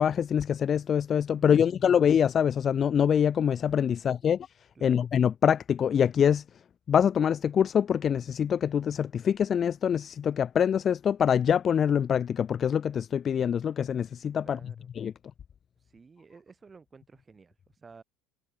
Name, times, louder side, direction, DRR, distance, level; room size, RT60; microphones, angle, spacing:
voice 1, 0.0-4.4 4.8-6.4 6.9-15.1, left 8 dB, 30° left, 0.4 m, -25 dB
voice 2, 3.9-4.3 4.7-5.0 14.4-14.9 15.8-18.0, right 5 dB, 20° right, 8.0 m, -53 dB
cardioid pair, 140°, 0 cm